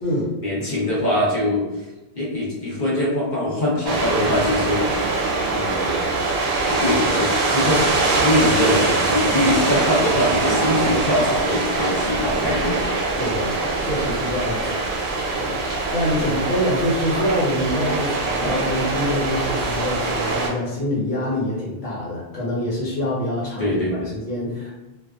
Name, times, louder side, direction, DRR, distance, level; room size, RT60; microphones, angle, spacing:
voice 1, 0.4-1.7 2.1-4.8 5.5-6.0 6.7-12.8 16.2-16.3 23.6-24.1, left 1 dB, 50° left, -6 dB, 0.8 m, -23 dB
sound 1, 3.9-20.5, right 3 dB, 75° right, 0.8 m, -23 dB
voice 2, 13.2-14.8 15.4-15.6 15.9-23.8 24.1-24.7, left 1 dB, 80° left, -7 dB, 1.3 m, -25 dB
2.5 x 2.2 x 2.3 m, 1.1 s
omnidirectional pair, 1.1 m